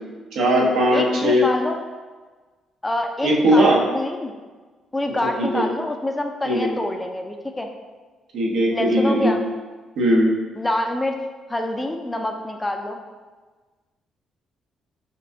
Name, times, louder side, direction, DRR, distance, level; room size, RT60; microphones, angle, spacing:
voice 1, 0.3-1.5 3.2-3.8 5.4-5.7 6.4-6.7 8.3-9.3 10.0-10.3, equal, 80° right, -3 dB, 0.8 m, -18 dB
voice 2, 0.9-1.8 2.8-4.3 4.9-7.7 8.7-9.4 10.5-11.2 11.5-13.0, left 1 dB, 15° left, 4 dB, 0.4 m, -26 dB
5.4 x 2.6 x 2.6 m, 1.3 s
cardioid pair, 90°, 0 cm